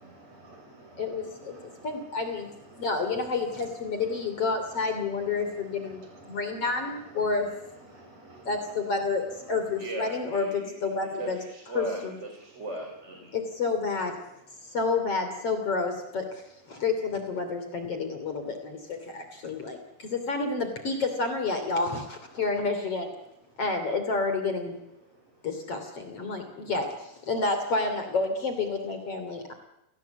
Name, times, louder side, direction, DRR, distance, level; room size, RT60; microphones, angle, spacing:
voice 1, 0.0-8.9 9.2-9.9 14.6-14.8 16.7-16.8 19.5-19.6 19.9-20.1 25.0-25.3 26.3-26.4, right 2 dB, 50° right, 2 dB, 8.4 m, -51 dB
voice 2, 1.0-2.5 2.8-7.5 8.5-9.2 9.5-11.4 11.8-12.1 13.3-14.2 14.7-23.1 23.6-24.8 25.4-29.5, left 4 dB, 45° left, 7 dB, 3.9 m, -29 dB
voice 3, 9.8-10.9 11.1-13.3, right 1 dB, 20° right, 3 dB, 3.7 m, -38 dB
28.5 x 18.5 x 8.3 m, 0.89 s
omnidirectional pair, 3.9 m